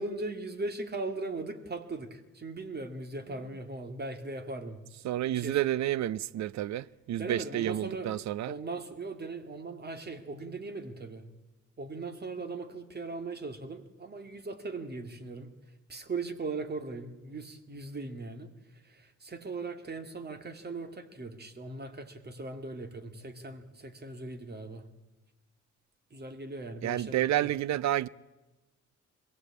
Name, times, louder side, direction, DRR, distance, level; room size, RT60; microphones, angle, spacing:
voice 1, 0.0-4.8 5.2-5.6 7.2-8.1 8.5-11.3 11.8-15.5 15.9-24.9 26.1-27.5, right 3 dB, 35° right, 2.2 m, -39 dB
voice 2, 5.0-8.5 26.8-28.1, right 13 dB, 65° right, 0.6 m, -30 dB
22.0 x 16.5 x 8.5 m
cardioid pair, 90°, 30 cm